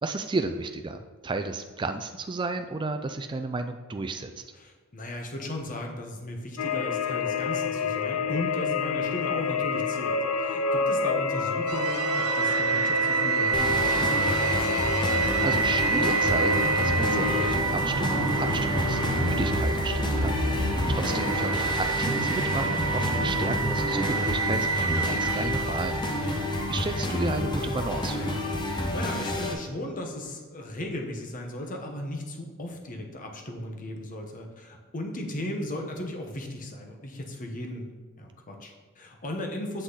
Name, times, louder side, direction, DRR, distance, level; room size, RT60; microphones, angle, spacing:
voice 1, 0.0-4.4 15.4-26.0 26.7-28.4, right 3 dB, 20° right, 7 dB, 0.3 m, -33 dB
voice 2, 4.6-14.7 20.5-20.6 26.0-26.4 28.6-37.9 38.2-39.8, left 1 dB, 35° left, 2 dB, 1.1 m, -36 dB
sound 1, 6.6-17.6, left 4 dB, 70° left, 0.4 m, -28 dB
sound 2, 11.7-26.8, right 4 dB, 65° right, 1.1 m, -28 dB
sound 3, 13.5-29.5, left 1 dB, 20° left, 0.8 m, -29 dB
7.8 x 6.1 x 4.0 m, 1.4 s
head